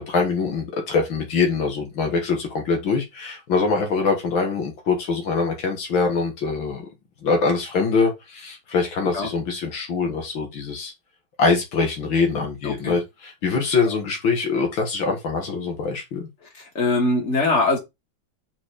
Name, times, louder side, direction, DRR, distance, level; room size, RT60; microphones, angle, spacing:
voice 1, 0.0-6.9 7.2-10.9 11.4-16.3, left 4 dB, 80° left, 2.5 m, -23 dB
voice 2, 12.6-13.0 16.7-17.8, left 2 dB, 35° left, 2.7 m, -21 dB
5.5 x 4.6 x 4.8 m
omnidirectional pair, 2.2 m